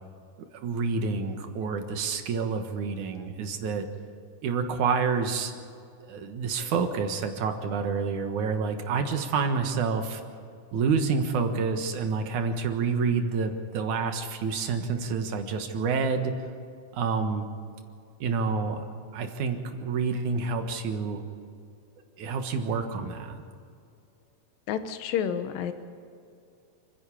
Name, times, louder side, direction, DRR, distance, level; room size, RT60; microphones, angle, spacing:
voice 1, 0.6-3.9 4.4-5.5 6.1-10.2 10.7-16.3 16.9-17.4 18.2-18.8 19.1-21.2 22.2-23.4, right 5 dB, 65° right, 6 dB, 2.7 m, -28 dB
voice 2, 24.7-25.7, left 8 dB, 80° left, 9 dB, 2.7 m, -29 dB
29.5 x 10.5 x 8.5 m, 2.4 s
omnidirectional pair, 4.1 m